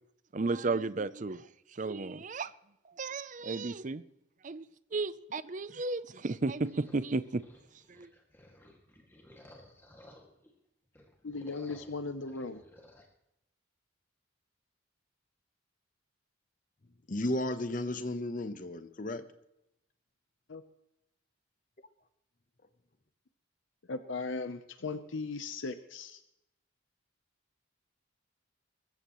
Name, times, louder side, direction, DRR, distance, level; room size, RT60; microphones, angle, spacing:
voice 1, 0.3-1.5 1.7-2.5 2.8-4.0 4.4-7.4 7.9-8.1, right 3 dB, 40° right, 0.5 m, -34 dB
sound 1, 6.6-10.5 10.9-13.1, left 1 dB, 10° left, 2.1 m, -57 dB
voice 2, 11.2-12.6 20.5-20.6 23.9-26.2, left 3 dB, 70° left, 0.8 m, -37 dB
voice 3, 17.1-19.2, left 1 dB, 40° left, 0.9 m, -34 dB
21.5 x 15.0 x 3.1 m
head